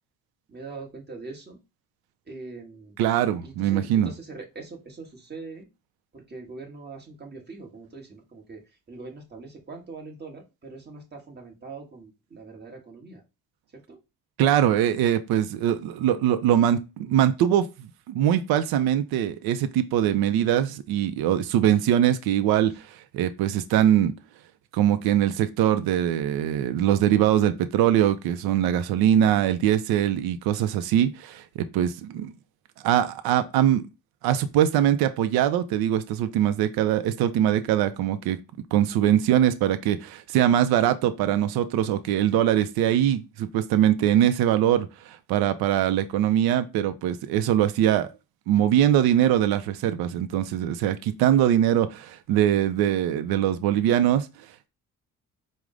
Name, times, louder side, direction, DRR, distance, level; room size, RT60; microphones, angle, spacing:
voice 1, 0.5-1.6 2.2-3.0 3.4-5.7 6.1-13.2 13.7-14.0, right 4 dB, 30° right, 1.4 m, -42 dB
voice 2, 3.0-4.1 14.4-24.1 24.7-32.3 32.8-33.9 34.2-38.4 38.7-48.1 48.5-54.3, right 11 dB, 85° right, 0.5 m, -22 dB
4.7 x 2.1 x 3.7 m
cardioid pair, 80°, 36 cm